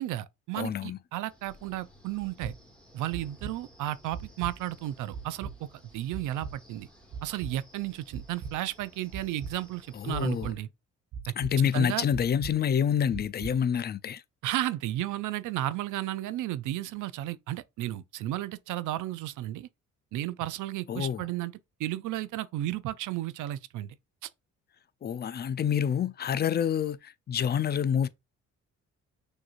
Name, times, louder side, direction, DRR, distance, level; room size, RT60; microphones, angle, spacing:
voice 1, 0.0-2.5 2.9-5.7 5.9-6.9 7.2-10.7 11.7-12.0 14.4-19.7 20.1-21.5 21.8-24.0 24.2-24.3, right 14 dB, 85° right, 0.5 m, -33 dB
voice 2, 0.6-1.0 9.9-10.5 11.4-14.2 20.9-21.3 25.0-28.1, left 8 dB, 35° left, 0.4 m, -27 dB
Wind, 1.3-10.5, equal, 5° left, 1.5 m, -56 dB
sound 1, 2.2-2.5 3.1-3.5 4.1-4.5 5.1-5.5 6.1-6.5 7.1-7.5 8.1-8.5 9.1-9.5 10.1-10.5 11.1-11.5 12.1-12.5 13.1-13.5, right 5 dB, 65° right, 0.9 m, -38 dB
6.3 x 3.0 x 2.4 m
cardioid pair, 90°, 30 cm